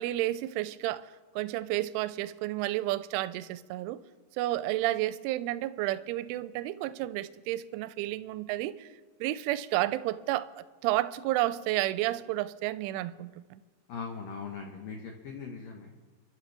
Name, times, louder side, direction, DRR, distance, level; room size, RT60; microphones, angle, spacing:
voice 1, 0.0-4.0 4.4-8.9 9.2-13.6, right 16 dB, 85° right, 2.9 m, -31 dB
voice 2, 13.9-15.9, left 5 dB, 75° left, 2.0 m, -40 dB
30.0 x 11.5 x 3.4 m
omnidirectional pair, 5.9 m